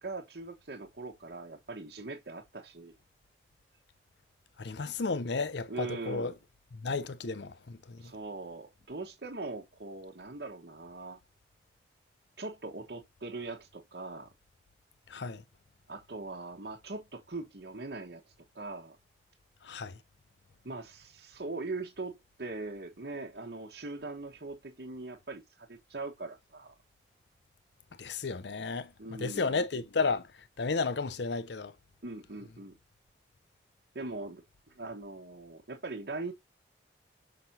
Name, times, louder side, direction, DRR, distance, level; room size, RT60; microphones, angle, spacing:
voice 1, 0.0-2.9 5.7-6.4 8.0-11.2 12.4-14.3 15.9-18.2 18.5-19.0 20.6-26.7 29.0-29.6 32.0-32.7 33.9-34.4 34.7-36.3, right 3 dB, 65° right, 1.1 m, -41 dB
voice 2, 4.6-6.3 6.7-8.1 15.1-15.4 19.6-20.0 28.0-28.9 29.2-30.3 30.6-31.7, left 4 dB, 75° left, 0.6 m, -33 dB
5.9 x 5.8 x 2.7 m
head